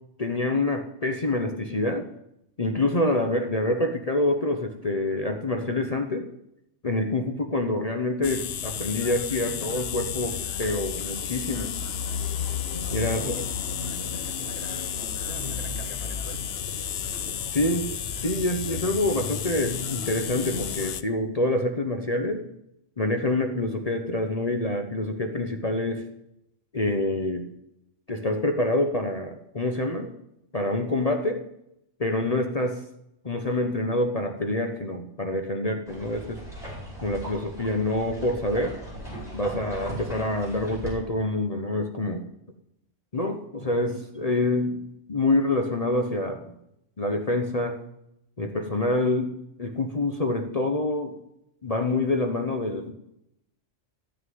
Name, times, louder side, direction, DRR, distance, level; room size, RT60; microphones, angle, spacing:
voice 1, 0.2-2.1 2.6-6.3 6.8-11.7 12.9-13.3 17.5-17.9 18.2-22.4 23.0-26.0 26.7-27.5 28.1-30.1 30.5-31.4 32.0-32.8 33.2-36.4 37.0-38.8 39.3-42.2 43.1-44.8 45.1-46.5 47.0-47.8 48.4-51.1 51.6-52.9, left 2 dB, 30° left, 4 dB, 1.0 m, -26 dB
sound 1, 8.2-21.0, left 8 dB, 60° left, 0.8 m, -32 dB
voice 2, 13.1-16.5, right 1 dB, 30° right, 5 dB, 1.4 m, -42 dB
sound 2, 35.9-40.9, right 1 dB, ahead, 4.9 m, -38 dB
13.5 x 6.4 x 9.4 m, 0.83 s
omnidirectional pair, 1.3 m